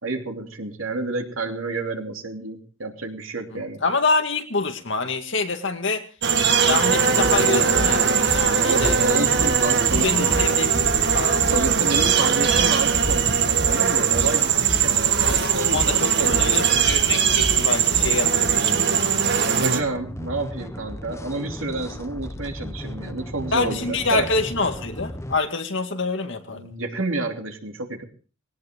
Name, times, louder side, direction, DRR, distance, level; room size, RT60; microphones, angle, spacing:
voice 1, 0.0-3.8 8.6-10.4 11.5-16.7 19.3-24.3 26.5-28.0, right 2 dB, 70° right, 4 dB, 3.0 m, -29 dB
voice 2, 3.5-6.0 6.6-8.0 8.3-9.0 9.9-11.4 15.7-18.8 23.5-26.7, left 3 dB, 60° left, 6 dB, 2.2 m, -26 dB
sound 1, 6.2-19.8, right 7 dB, 55° right, 1.6 m, -20 dB
sound 2, 6.7-6.8 7.1-18.5, equal, 5° right, 5.0 m, -32 dB
sound 3, 19.8-25.4, left 1 dB, 15° left, 1.0 m, -35 dB
20.0 x 18.0 x 3.7 m, 0.38 s
head